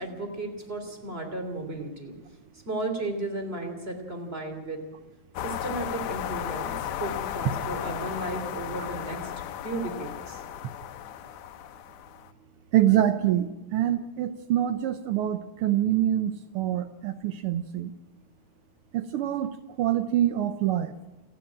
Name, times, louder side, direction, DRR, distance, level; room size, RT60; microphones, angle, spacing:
voice 1, 0.0-2.1 2.7-4.8 5.4-9.3 9.6-10.4, right 2 dB, 20° right, 5 dB, 3.3 m, -34 dB
sound 1, 5.4-12.3, left 11 dB, 85° left, 2.4 m, -35 dB
voice 2, 12.7-17.9 18.9-19.5 19.8-20.9, right 12 dB, 75° right, 10 dB, 1.2 m, -25 dB
28.0 x 10.5 x 8.8 m, 1.0 s
omnidirectional pair, 3.4 m